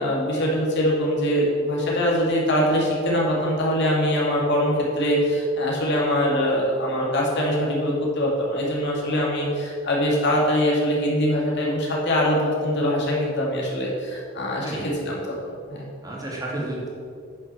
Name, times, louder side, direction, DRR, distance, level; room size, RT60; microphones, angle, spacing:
voice 1, 0.0-15.9, equal, 60° left, -3 dB, 2.6 m, -23 dB
voice 2, 14.6-15.0 16.0-16.9, right 2 dB, 20° right, -5 dB, 2.5 m, -31 dB
9.8 x 6.1 x 7.1 m, 2.4 s
head